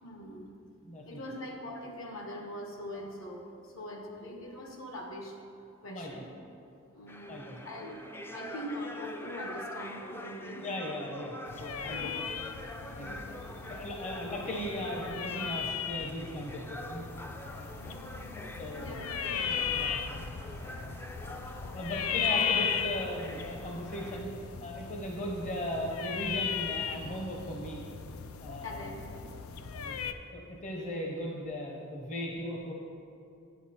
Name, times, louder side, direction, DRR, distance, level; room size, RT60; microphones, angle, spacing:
voice 1, 0.0-0.5 1.0-5.4 5.8-6.3 6.9-10.6 11.8-12.1 12.8-13.3 13.9-14.0 17.8-18.3 18.8-19.6 28.6-29.0, left 1 dB, 65° left, 1 dB, 1.2 m, -43 dB
voice 2, 0.8-1.2 5.9-6.1 7.3-7.6 10.6-12.3 12.9-13.4 13.7-17.0 17.5-17.7 18.4-19.0 19.4-20.2 20.6-20.9 21.2-24.3 24.6-27.9 28.4-29.0 29.7-32.7, equal, 35° left, -1 dB, 0.9 m, -38 dB
sound 1, 7.1-24.2, left 1 dB, 10° left, 0.4 m, -45 dB
sound 2, 11.5-30.1, left 7 dB, 90° left, 0.5 m, -36 dB
9.2 x 8.2 x 4.3 m, 2.6 s
head